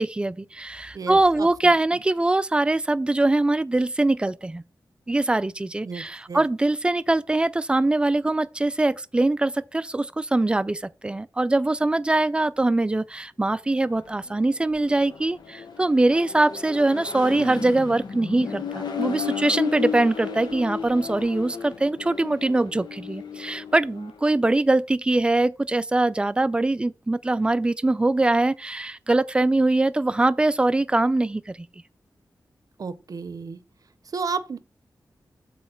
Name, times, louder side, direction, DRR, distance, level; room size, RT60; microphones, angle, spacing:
voice 1, 0.0-4.6 5.1-31.6, right 2 dB, 15° right, 0.3 m, -22 dB
voice 2, 0.9-1.7 5.8-6.4 32.8-33.6 34.1-34.6, right 5 dB, 55° right, 0.6 m, -32 dB
Accelerating revving vroom, 13.8-24.2, left 6 dB, 85° left, 1.0 m, -34 dB
8.1 x 3.1 x 5.7 m
wide cardioid pair, 125°, 7 cm